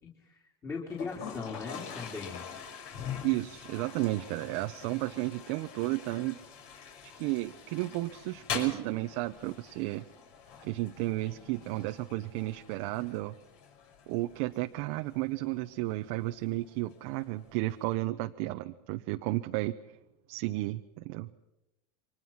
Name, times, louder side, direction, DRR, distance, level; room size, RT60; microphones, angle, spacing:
voice 1, 0.0-2.4, left 4 dB, 20° left, -3 dB, 3.8 m, -39 dB
Toilet flush, 0.9-17.9, left 7 dB, 60° left, 5.8 m, -45 dB
voice 2, 3.2-6.4 7.1-10.0 10.6-13.4 14.1-19.7 20.3-21.3, right 18 dB, 60° right, 7 dB, 0.9 m, -33 dB
29.0 x 24.0 x 5.8 m, 0.93 s
supercardioid pair, 135°, 14 cm